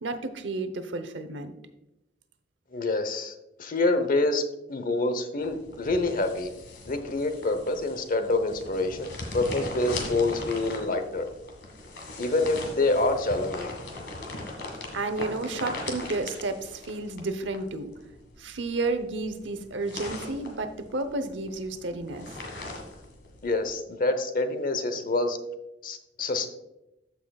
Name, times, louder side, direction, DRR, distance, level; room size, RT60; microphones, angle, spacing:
voice 1, 0.0-1.5 14.9-17.9 18.4-22.4, right 3 dB, 90° right, 9 dB, 0.8 m, -31 dB
voice 2, 2.7-4.4 4.7-6.5 6.9-11.2 12.2-13.7 23.4-25.4 25.8-26.5, left 2 dB, 50° left, 8 dB, 0.9 m, -27 dB
sound 1, 5.4-23.7, left 2 dB, 70° left, 1.8 m, -40 dB
13.5 x 5.7 x 2.4 m, 0.91 s
head